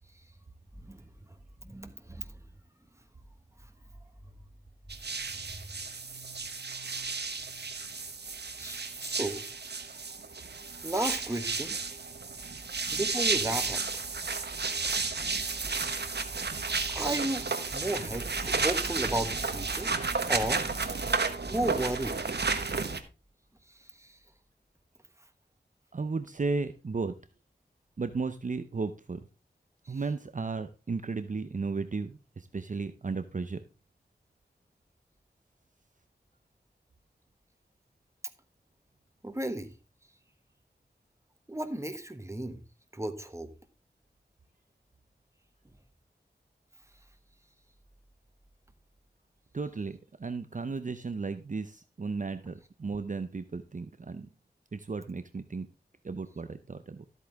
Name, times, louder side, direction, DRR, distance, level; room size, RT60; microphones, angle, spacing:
voice 1, 1.6-2.3 8.6-9.4 10.8-11.8 12.9-13.8 16.9-20.0 20.3-20.6 21.5-22.2 24.0-24.2 29.9-30.0 39.2-39.7 41.5-42.6 42.9-43.5, right 1 dB, 15° right, 9 dB, 1.4 m, -34 dB
sound 1, 4.9-23.0, right 4 dB, 70° right, 1.2 m, -32 dB
voice 2, 25.9-27.1 28.0-29.2 29.9-33.6 49.5-54.3 54.7-55.7 56.0-57.0, right 4 dB, 45° right, 10 dB, 0.6 m, -34 dB
13.0 x 8.3 x 3.5 m, 0.31 s
wide cardioid pair, 70°, 18 cm